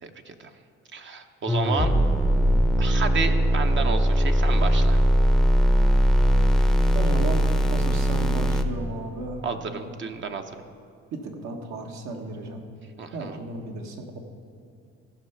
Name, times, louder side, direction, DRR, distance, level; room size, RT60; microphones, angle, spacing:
voice 1, 0.0-0.5 0.9-1.9 2.8-5.0 9.4-10.6 13.0-13.4, right 5 dB, 40° right, 6 dB, 0.7 m, -31 dB
sound 1, 1.5-8.6, equal, ahead, 0.6 m, -20 dB
voice 2, 6.9-10.0 11.1-12.6 13.1-14.2, right 3 dB, 70° right, 3 dB, 1.4 m, -34 dB
14.5 x 5.6 x 5.8 m, 2.3 s
cardioid pair, 95°, 29 cm